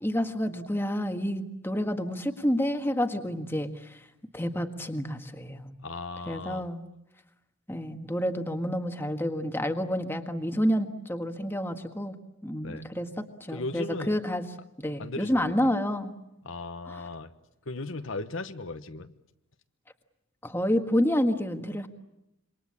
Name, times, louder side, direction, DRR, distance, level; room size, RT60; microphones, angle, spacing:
voice 1, 0.0-4.0 4.3-5.7 6.3-6.8 7.7-12.1 12.4-14.4 14.8-16.1 20.4-21.9, equal, 10° left, 6 dB, 1.6 m, -29 dB
voice 2, 5.8-6.7 12.6-12.9 13.5-14.1 15.0-15.6 16.4-17.3 17.7-19.1, left 2 dB, 60° left, 9 dB, 1.1 m, -37 dB
27.0 x 24.0 x 8.6 m, 0.86 s
head